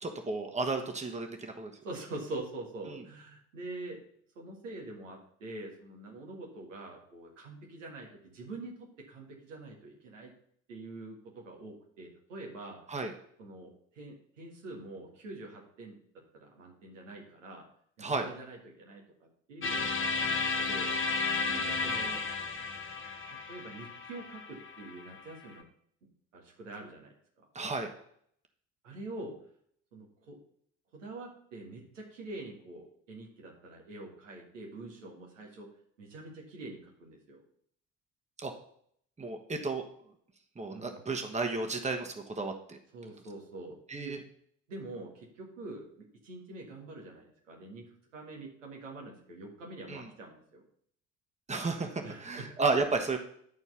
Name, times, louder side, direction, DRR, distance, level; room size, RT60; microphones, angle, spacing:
voice 1, 0.0-1.7 2.9-3.0 12.9-13.1 18.0-18.3 27.5-27.9 38.4-38.5 39.2-39.8 40.5-42.8 43.9-44.2 49.9-50.1 51.5-53.2, right 3 dB, 20° right, 5 dB, 1.4 m, -33 dB
voice 2, 1.8-4.0 4.4-10.3 10.7-12.8 13.4-16.0 16.3-17.6 18.0-19.0 19.5-20.9 21.5-22.2 23.5-25.7 26.3-27.4 28.8-29.3 29.9-30.4 30.9-35.7 36.0-37.4 40.7-41.0 42.9-44.2 44.7-45.9 46.2-50.6 52.0-52.5, right 2 dB, 80° right, 0 dB, 1.7 m, -45 dB
sound 1, 19.6-25.5, left 4 dB, 30° left, 1.4 m, -33 dB
10.5 x 4.4 x 5.7 m, 0.65 s
figure-of-eight pair, 50°, 38 cm